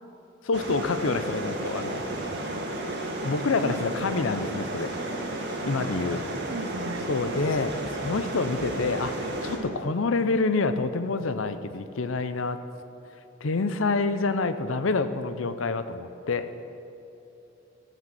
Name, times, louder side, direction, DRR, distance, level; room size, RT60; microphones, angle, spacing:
voice 1, 0.4-2.0 3.2-6.2 7.1-12.6 13.4-16.5, left 3 dB, 75° left, 11 dB, 0.6 m, -27 dB
sound 1, 0.5-9.6, right 1 dB, 60° right, 1.7 m, -33 dB
voice 2, 5.7-7.1 8.2-8.4 9.6-9.8, right 2 dB, 90° right, 8 dB, 0.9 m, -39 dB
13.5 x 6.2 x 7.6 m, 2.8 s
head